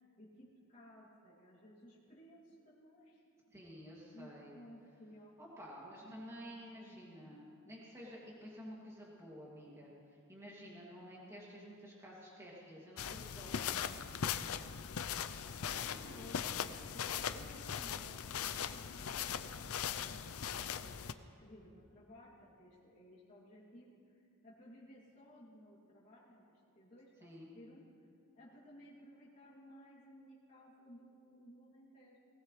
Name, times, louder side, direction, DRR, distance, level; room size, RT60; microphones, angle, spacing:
voice 1, 0.0-3.2 4.1-5.3 6.0-7.1 15.4-16.7 16.9-27.9 28.3-32.2, equal, 35° left, -8 dB, 2.8 m, -58 dB
voice 2, 3.5-4.5 5.4-9.9 10.3-14.0 15.6-16.4 27.2-27.5, equal, 15° right, -5 dB, 2.5 m, -52 dB
sound 1, 13.0-21.1, left 8 dB, 70° left, 0.5 m, -40 dB
19.5 x 18.5 x 3.3 m, 2.5 s
head